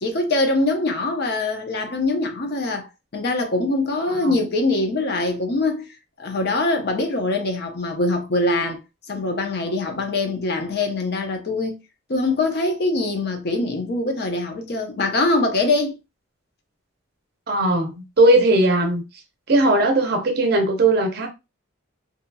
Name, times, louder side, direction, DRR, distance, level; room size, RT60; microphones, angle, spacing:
voice 1, 0.0-5.9 6.2-8.8 9.1-11.8 12.1-15.9, left 2 dB, 50° left, 0.6 m, -23 dB
voice 2, 17.5-19.0 19.5-21.3, right 2 dB, 45° right, 0.6 m, -18 dB
2.7 x 2.6 x 2.2 m
head